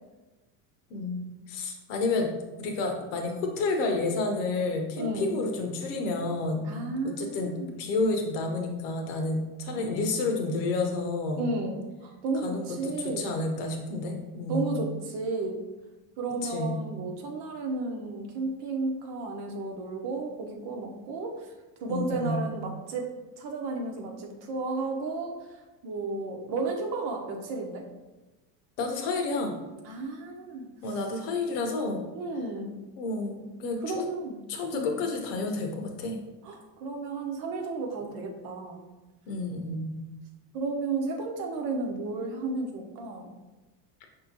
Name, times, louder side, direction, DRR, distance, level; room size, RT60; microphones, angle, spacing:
voice 1, 0.9-2.3 2.6-6.6 7.0-7.5 7.8-11.5 12.4-14.7 16.4-16.7 21.8-22.4 28.8-29.5 30.8-32.1 33.0-34.0 34.5-36.2 39.3-40.0, left 3 dB, 80° left, 3 dB, 0.9 m, -30 dB
voice 2, 5.0-5.4 6.6-7.8 9.7-9.9 11.4-13.3 14.5-15.6 16.2-21.4 21.8-23.1 23.4-25.3 25.8-27.8 29.8-30.7 32.1-32.7 33.8-34.4 34.7-34.9 36.4-38.8 40.5-43.3, right 3 dB, 55° right, 2 dB, 0.9 m, -33 dB
5.2 x 2.8 x 2.8 m, 1.1 s
supercardioid pair, 100°, 46 cm